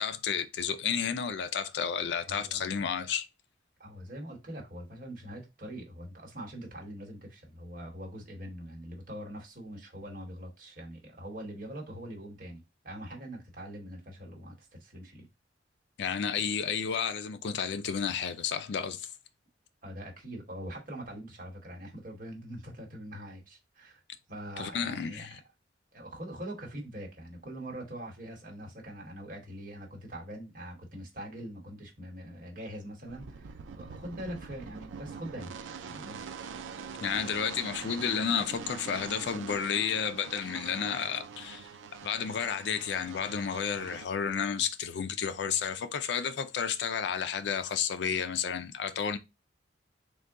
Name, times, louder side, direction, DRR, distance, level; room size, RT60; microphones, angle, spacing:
voice 1, 0.0-3.3 16.0-19.1 24.6-25.4 37.0-41.7 42.0-49.2, left 7 dB, 60° left, 0.4 m, -31 dB
voice 2, 2.3-2.9 3.8-15.2 19.8-24.0 24.3-25.4 25.9-35.5 35.8-36.2, equal, 45° right, 1.2 m, -43 dB
sound 1, 33.1-44.1, right 6 dB, 90° right, 0.4 m, -44 dB
3.8 x 2.2 x 3.5 m
head